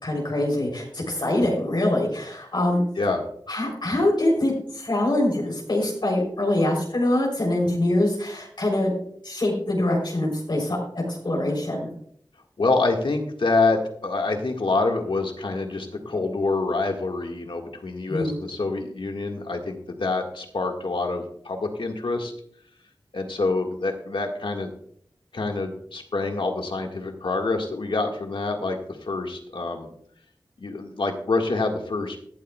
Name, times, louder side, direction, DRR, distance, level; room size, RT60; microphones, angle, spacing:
voice 1, 0.0-2.8 3.5-8.9 9.2-11.9 18.1-18.4, left 1 dB, 60° left, -1 dB, 3.5 m, -24 dB
voice 2, 12.6-22.3 23.1-24.7 25.3-29.9 30.6-32.2, left 3 dB, 80° left, 3 dB, 1.7 m, -26 dB
17.0 x 12.0 x 2.3 m, 0.65 s
wide cardioid pair, 50°, 9 cm